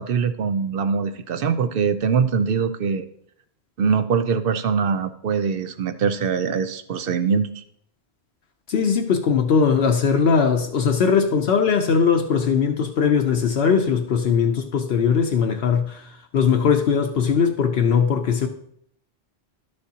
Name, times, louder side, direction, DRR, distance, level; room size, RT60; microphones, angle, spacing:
voice 1, 0.0-3.1 3.8-7.6, right 6 dB, 65° right, 0.8 m, -23 dB
voice 2, 8.7-18.5, left 6 dB, 70° left, 0.9 m, -20 dB
12.0 x 6.5 x 2.8 m
omnidirectional pair, 1.1 m